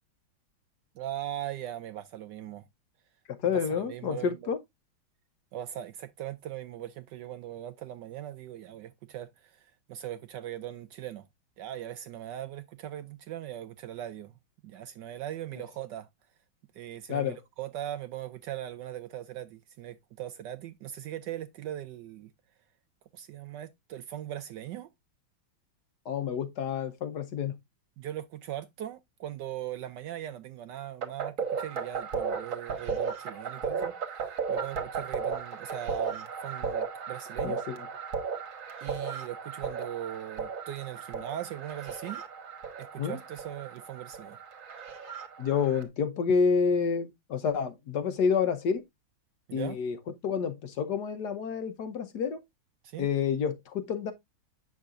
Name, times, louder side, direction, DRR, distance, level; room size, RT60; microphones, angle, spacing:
voice 1, 1.0-2.7 3.4-4.5 5.5-11.2 11.6-14.3 14.6-16.1 16.7-22.3 23.1-24.9 28.0-37.6 38.8-42.2 42.9-44.4 49.5-49.8 52.8-53.1, right 12 dB, 75° right, 1.0 m, -40 dB
voice 2, 3.3-4.6 17.1-17.4 26.1-27.6 37.4-37.9 43.0-43.2 45.4-48.8 49.5-50.0 50.2-52.4 53.0-54.1, left 6 dB, 65° left, 1.3 m, -29 dB
sound 1, 31.0-45.8, right 6 dB, 45° right, 1.5 m, -35 dB
8.4 x 6.4 x 2.4 m
omnidirectional pair, 2.2 m